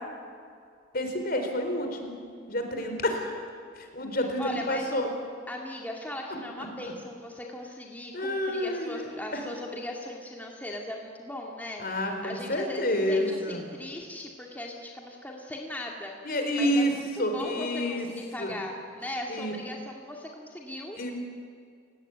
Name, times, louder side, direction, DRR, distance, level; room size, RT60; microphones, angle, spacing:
voice 1, 0.9-2.2 2.5-3.3 3.7-5.1 8.1-9.4 11.8-13.6 16.2-16.9 17.2-18.1 18.4-18.5 19.3-19.5 21.0-21.1, left 1 dB, 50° left, 5 dB, 4.3 m, -29 dB
voice 2, 4.4-4.9 5.5-21.0, left 1 dB, 10° left, -1 dB, 2.1 m, -39 dB
29.0 x 18.5 x 9.3 m, 2.2 s
head